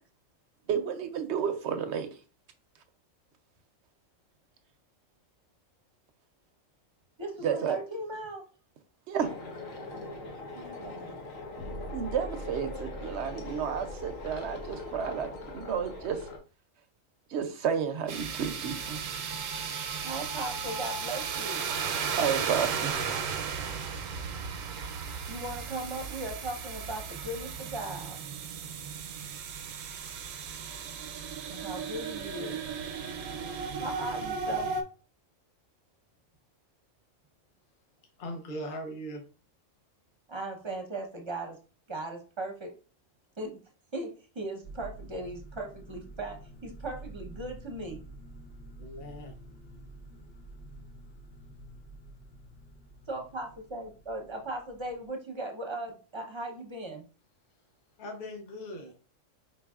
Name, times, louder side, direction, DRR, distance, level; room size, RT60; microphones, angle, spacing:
voice 1, 0.7-2.1 7.4-7.8 9.1-9.3 11.9-16.3 17.3-19.0 22.2-22.9, right 7 dB, 65° right, 8 dB, 0.8 m, -31 dB
voice 2, 7.2-8.4 10.5-11.2 20.0-21.6 25.3-28.2 31.5-32.6 33.8-34.7 40.3-41.6 41.9-42.7 43.4-43.5 43.9-48.0 53.1-57.0, right 1 dB, 25° right, 3 dB, 0.7 m, -38 dB
sound 1, 9.2-16.4, left 2 dB, 80° left, 1.3 m, -40 dB
sound 2, 18.1-34.8, right 6 dB, 85° right, 1.0 m, -35 dB
voice 3, 38.2-39.2 48.8-49.3 49.9-50.0 58.0-58.9, equal, 45° left, 3 dB, 0.9 m, -39 dB
sound 3, 44.6-55.1, right 2 dB, 60° left, 1.3 m, -48 dB
4.8 x 3.9 x 2.3 m, 0.36 s
omnidirectional pair, 1.3 m